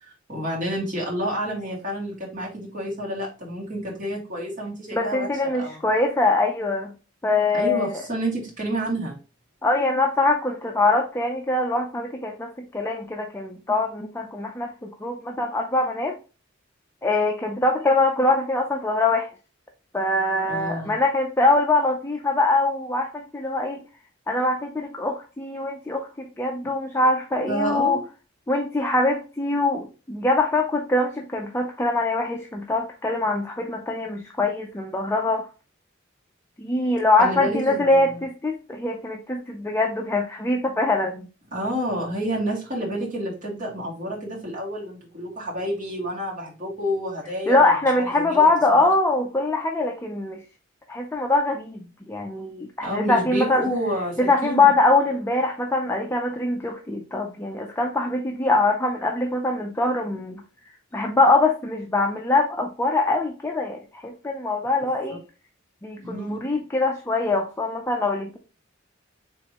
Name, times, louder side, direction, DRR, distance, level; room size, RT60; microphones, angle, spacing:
voice 1, 0.0-5.8 7.5-9.2 20.5-21.0 27.5-28.0 37.2-38.3 41.5-48.5 48.8-48.9 52.8-54.7 65.1-65.2 66.0-66.4, equal, 45° right, -5 dB, 2.0 m, -29 dB
voice 2, 4.9-6.9 7.2-8.0 9.6-16.2 17.0-19.3 19.9-23.8 24.3-28.0 28.5-35.5 36.6-41.3 47.5-50.4 50.9-51.8 52.1-53.7 54.2-60.4 60.9-65.2 65.8-68.4, left 2 dB, 15° left, 2 dB, 0.5 m, -23 dB
4.4 x 3.3 x 2.9 m, 0.33 s
head